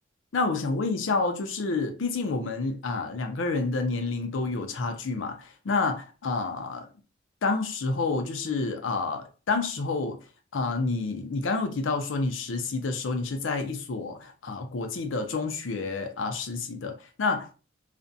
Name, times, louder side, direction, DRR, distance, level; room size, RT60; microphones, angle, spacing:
voice 1, 0.3-6.9 7.4-10.2 10.5-17.6, left 3 dB, 85° left, 0.5 m, -29 dB
2.5 x 2.1 x 2.6 m
head